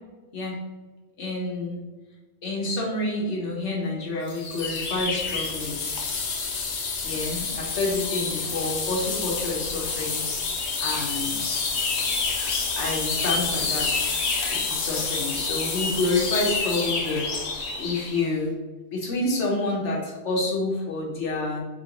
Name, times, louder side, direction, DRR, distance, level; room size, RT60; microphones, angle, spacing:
voice 1, 1.2-1.8 2.4-5.8 7.0-10.2 10.8-11.4 12.8-14.1 14.5-18.5 18.9-21.6, left 2 dB, 90° left, -2 dB, 1.3 m, -28 dB
sound 1, 4.3-18.1, left 4 dB, 75° left, 0.9 m, -28 dB
4.1 x 3.0 x 2.9 m, 1.2 s
omnidirectional pair, 1.2 m